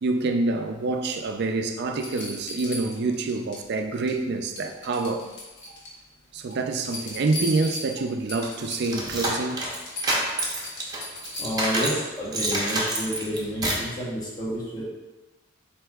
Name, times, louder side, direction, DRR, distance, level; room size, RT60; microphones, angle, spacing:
voice 1, 0.0-5.3 6.3-9.6, right 3 dB, 55° right, 6 dB, 0.4 m, -27 dB
sound 1, 1.9-3.6 3.9-4.3 4.6-6.0 6.4-9.1 9.5-9.6 9.8-11.7 13.4-13.5, left 1 dB, 60° left, 1.0 m, -37 dB
sound 2, 8.4-12.0 12.3-13.9, right 1 dB, 20° right, 0.7 m, -27 dB
voice 2, 11.4-14.8, equal, 20° left, -6 dB, 1.0 m, -30 dB
7.5 x 2.8 x 2.3 m, 1.1 s
head